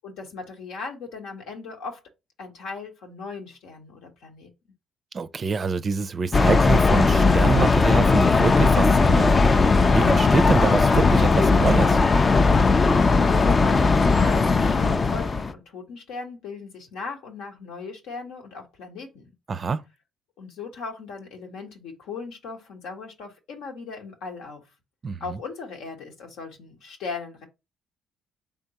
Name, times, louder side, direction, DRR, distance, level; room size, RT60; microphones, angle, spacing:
voice 1, 0.0-2.0 2.4-4.5 12.8-19.3 20.4-24.7 25.2-27.5, left 4 dB, 80° left, 1.1 m, -38 dB
voice 2, 5.1-12.0 19.5-19.8 25.0-25.4, right 5 dB, 40° right, 0.4 m, -26 dB
sound 1, 6.3-15.5, left 4 dB, 35° left, 0.4 m, -18 dB
3.6 x 3.5 x 2.8 m
supercardioid pair, 70°, 0 cm